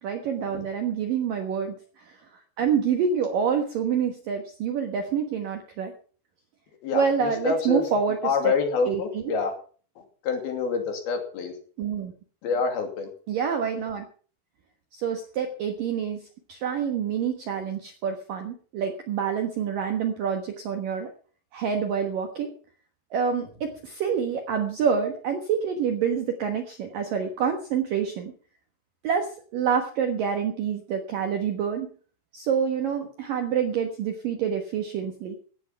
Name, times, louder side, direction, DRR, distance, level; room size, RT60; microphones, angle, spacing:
voice 1, 0.0-2.2 2.6-5.9 6.9-8.5 8.9-9.4 11.8-12.1 13.3-14.1 14.9-16.2 16.5-21.1 21.5-22.5 23.1-28.3 29.0-31.9 32.3-35.4, right 7 dB, 65° right, 5 dB, 2.2 m, -27 dB
voice 2, 6.8-7.8 8.2-9.5 10.2-11.5 12.4-13.1, left 5 dB, 55° left, 5 dB, 4.2 m, -27 dB
16.0 x 10.0 x 5.8 m, 0.43 s
omnidirectional pair, 5.8 m